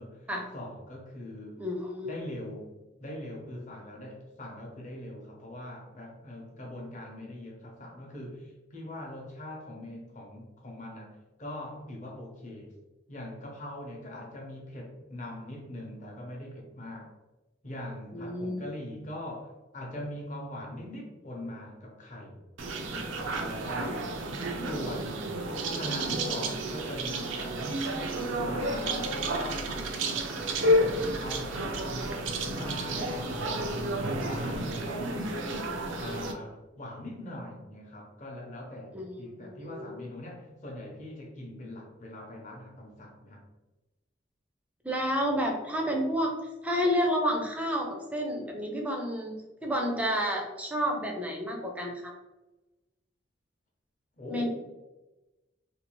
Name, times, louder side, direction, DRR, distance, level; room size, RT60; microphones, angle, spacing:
voice 1, 0.0-1.6 2.0-2.7 3.0-12.7 13.1-17.1 17.6-22.4 22.9-24.0 24.7-25.4 25.7-27.9 28.4-30.3 30.6-33.7 34.0-35.6 35.9-43.4 54.2-54.5, left 1 dB, 40° left, 0 dB, 0.7 m, -42 dB
voice 2, 1.6-2.1 18.1-18.6 38.9-40.0 44.8-46.3 46.6-52.1 54.3-54.5, equal, 10° right, 1 dB, 0.4 m, -30 dB
sound 1, 22.6-36.3, right 1 dB, 90° right, 0.4 m, -31 dB
2.6 x 2.4 x 2.9 m, 1.1 s
head